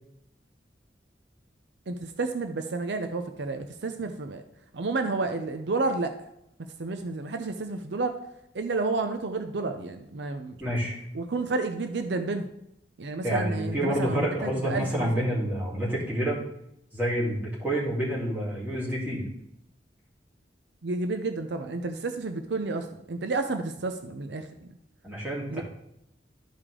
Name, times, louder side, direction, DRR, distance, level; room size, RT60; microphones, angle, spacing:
voice 1, 1.9-4.4 4.7-6.1 6.8-8.2 8.5-10.6 11.1-12.5 13.0-15.1 20.8-24.7 25.5-25.6, right 3 dB, 70° right, 7 dB, 0.6 m, -30 dB
voice 2, 10.6-10.9 13.2-16.4 16.9-19.2 25.0-25.6, equal, 10° right, -7 dB, 3.0 m, -28 dB
12.5 x 4.9 x 3.7 m, 0.79 s
head